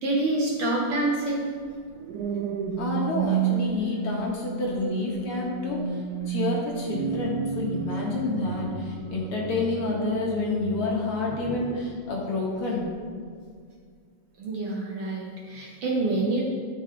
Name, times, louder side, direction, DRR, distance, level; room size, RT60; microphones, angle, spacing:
voice 1, 0.0-1.5 11.4-11.7 14.4-16.4, right 2 dB, 60° right, -2 dB, 1.8 m, -27 dB
sound 1, 1.7-12.2 12.8-13.1, right 7 dB, 85° right, 2.0 m, -32 dB
voice 2, 2.8-6.0 6.3-12.9, left 3 dB, 55° left, -3 dB, 2.0 m, -28 dB
13.0 x 6.8 x 3.2 m, 2.1 s
omnidirectional pair, 3.3 m